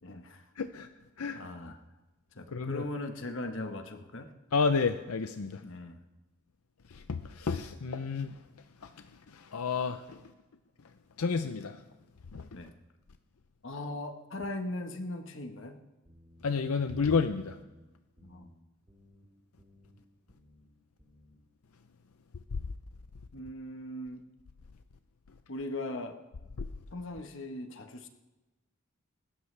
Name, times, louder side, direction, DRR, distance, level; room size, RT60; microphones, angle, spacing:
voice 1, 0.0-0.4 1.3-1.8 2.3-4.3 5.6-6.0 12.5-12.7 13.6-15.8 18.2-18.5 23.3-24.2 25.5-26.2 26.9-28.1, left 2 dB, 60° left, 6 dB, 1.3 m, -39 dB
voice 2, 0.6-0.9 1.2-1.4 2.5-2.8 4.5-5.6 6.9-8.4 8.8-8.9 9.3-10.2 11.2-11.8 12.3-12.5 16.4-17.6, left 5 dB, 85° left, 9 dB, 0.6 m, -30 dB
sound 1, 16.0-16.4 16.7-17.1 17.5-17.8 18.2-18.5 18.9-19.2 19.6-19.9 20.3-20.6 21.0-21.4, left 1 dB, 15° right, 4.2 m, -59 dB
24.5 x 13.0 x 3.4 m, 1.1 s
head